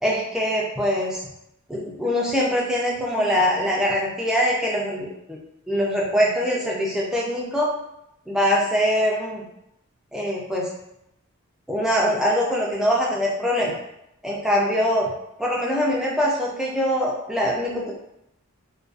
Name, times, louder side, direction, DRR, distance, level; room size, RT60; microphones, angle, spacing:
voice 1, 0.0-1.2 1.7-5.4 5.7-7.7 8.3-9.4 10.1-10.7 11.7-13.7 14.2-15.1 15.4-17.9, equal, 5° right, -4 dB, 0.4 m, -23 dB
2.4 x 2.3 x 2.3 m, 0.81 s
head